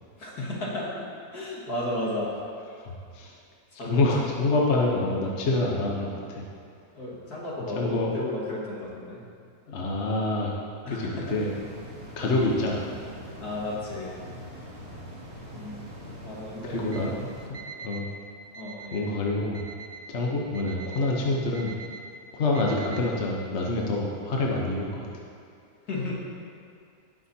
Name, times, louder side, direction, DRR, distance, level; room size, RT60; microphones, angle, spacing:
voice 1, 0.2-0.9 1.3-2.3 3.8-4.3 6.9-9.2 10.8-11.4 13.4-14.3 15.5-16.0 16.2-16.9 18.6-19.2 20.3-20.4 25.9-26.2, left 1 dB, 65° left, -6 dB, 2.3 m, -34 dB
voice 2, 2.8-3.4 3.8-6.4 7.7-8.1 9.7-10.5 10.9-11.5 12.2-12.9 14.9-15.0 16.7-18.1 18.9-19.6 20.1-21.7 22.3-25.1, left 2 dB, 50° left, -2 dB, 1.1 m, -27 dB
sound 1, 11.2-17.5, equal, 25° right, 2.2 m, -42 dB
Alarm, 16.8-17.0 17.5-18.0 18.5-19.0 19.5-20.0 20.5-21.0 21.5-22.0 22.5-23.0, right 5 dB, 50° right, 1.4 m, -42 dB
16.5 x 6.1 x 2.8 m, 2.3 s
omnidirectional pair, 1.8 m